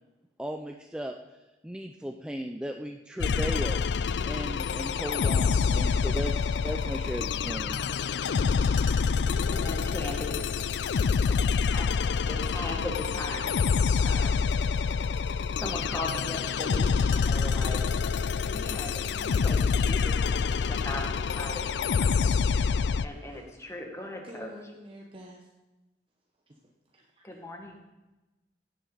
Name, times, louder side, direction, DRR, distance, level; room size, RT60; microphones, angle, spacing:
voice 1, 0.4-1.2 1.6-3.8 4.2-7.8, equal, 5° right, 3 dB, 0.5 m, -36 dB
sound 1, 3.2-23.0, left 5 dB, 70° left, 0.4 m, -27 dB
voice 2, 9.5-10.4 11.3-11.4 11.7-11.9 12.2-13.7 14.0-14.5 15.6-17.8 18.5-22.4 23.0-24.5 27.2-27.8, left 1 dB, 15° left, 1 dB, 1.7 m, -38 dB
voice 3, 23.1-23.4 24.2-25.5 26.5-26.6 26.9-27.4, right 1 dB, 30° right, -1 dB, 1.0 m, -48 dB
16.0 x 7.8 x 4.0 m, 1.1 s
head